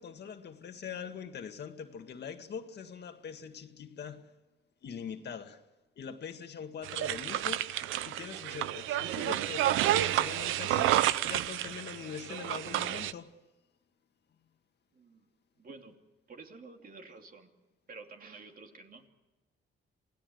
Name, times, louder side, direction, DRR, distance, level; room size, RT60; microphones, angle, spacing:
voice 1, 0.0-4.3 4.8-5.6 6.0-7.7 8.0-13.3, left 7 dB, 55° left, 1.9 m, -43 dB
sound 1, 6.8-13.1, right 13 dB, 90° right, 0.7 m, -30 dB
voice 2, 14.9-15.3 15.6-16.0 16.3-17.5 17.9-19.1, right 4 dB, 45° right, 2.9 m, -50 dB
27.5 x 17.0 x 8.0 m
cardioid pair, 90°, 20 cm